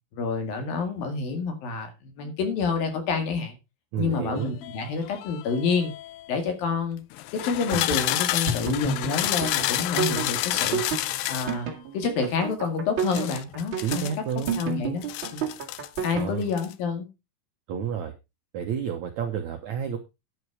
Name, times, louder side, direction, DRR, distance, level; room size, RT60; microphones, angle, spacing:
voice 1, 0.1-3.6 4.0-5.9 6.3-7.0 7.3-10.8 11.3-14.1 14.6-15.1 15.3-15.4 16.0-17.1, left 5 dB, 60° left, 6 dB, 3.6 m, -28 dB
voice 2, 3.9-4.6 13.8-14.5 16.1-16.5 17.7-18.1 18.5-20.0, right 7 dB, 70° right, 4 dB, 1.7 m, -30 dB
sound 1, 4.4-6.3 7.1-11.6 13.0-14.6 15.0-16.1 16.4-16.7, left 15 dB, 80° left, 2.2 m, -30 dB
sound 2, 7.4-16.3, right 6 dB, 40° right, 2.1 m, -30 dB
10.5 x 8.1 x 4.8 m, 0.26 s
omnidirectional pair, 4.8 m